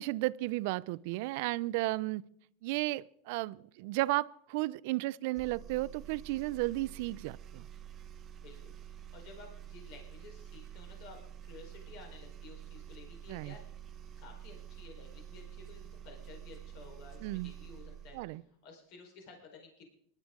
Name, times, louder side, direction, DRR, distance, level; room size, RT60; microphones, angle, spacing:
voice 1, 0.0-2.2 2.6-7.7 13.3-13.5 17.2-17.5 18.1-18.4, right 19 dB, 60° right, 0.4 m, -34 dB
sound 1, 5.3-18.3, right 9 dB, 25° right, 1.3 m, -48 dB
voice 2, 8.4-13.6 14.2-19.8, left 4 dB, 55° left, 4.3 m, -54 dB
20.5 x 12.0 x 3.7 m
supercardioid pair, 135°, 0 cm